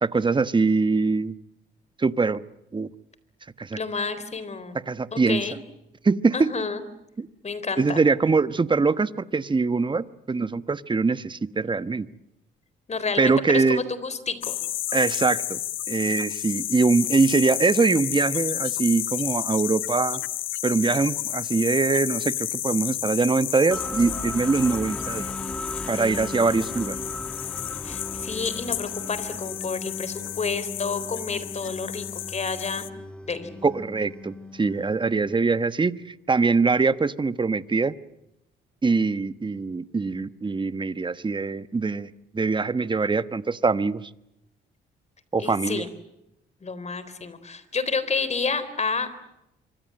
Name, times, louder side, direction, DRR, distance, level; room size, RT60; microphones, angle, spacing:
voice 1, 0.0-1.3 2.0-2.4 2.7-2.9 3.6-3.8 4.9-5.4 6.0-6.5 7.2-7.3 7.8-12.1 13.2-13.8 14.9-15.6 15.9-20.2 20.6-25.3 25.9-27.0 33.6-36.0 36.3-37.9 38.8-44.1 45.3-45.8, right 4 dB, 25° right, 14 dB, 1.1 m, -23 dB
voice 2, 3.8-4.8 5.1-5.6 6.3-6.8 7.4-8.0 12.9-14.6 27.8-32.9 33.2-33.5 45.4-45.9 46.6-49.2, left 4 dB, 35° left, 14 dB, 4.0 m, -30 dB
sound 1, 14.4-32.9, left 14 dB, 80° left, 1.0 m, -32 dB
sound 2, 23.7-35.5, left 1 dB, 5° left, 1.9 m, -37 dB
26.0 x 25.0 x 7.7 m, 0.84 s
cardioid pair, 90°, 20 cm